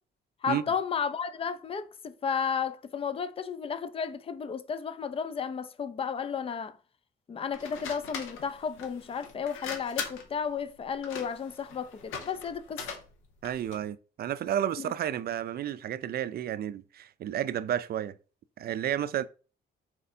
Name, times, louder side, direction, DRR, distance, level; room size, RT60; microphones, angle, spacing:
voice 1, 0.4-6.7 7.3-12.8 14.8-14.9, left 6 dB, 30° left, 0.4 m, -33 dB
sound 1, 7.5-13.9, left 6 dB, 85° left, 0.9 m, -41 dB
voice 2, 13.4-18.2 18.6-19.3, right 10 dB, 50° right, 0.4 m, -31 dB
4.3 x 2.6 x 4.1 m
cardioid pair, 90°, 20 cm